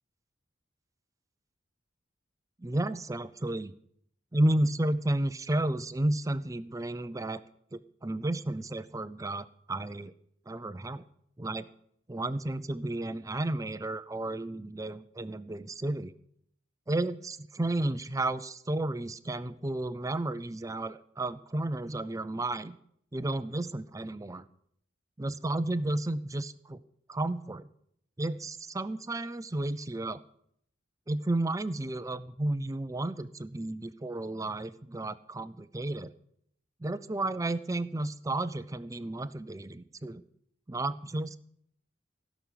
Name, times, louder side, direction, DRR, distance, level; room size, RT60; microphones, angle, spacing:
voice 1, 2.6-3.7 4.3-7.4 7.7-10.1 10.5-11.0 11.4-11.7 12.1-16.1 16.9-22.8 23.1-24.5 25.2-26.8 27.1-27.7 28.2-30.2 31.1-36.1 36.8-40.2 40.7-41.4, right 1 dB, 20° right, 14 dB, 0.5 m, -32 dB
16.0 x 6.2 x 8.3 m, 0.70 s
head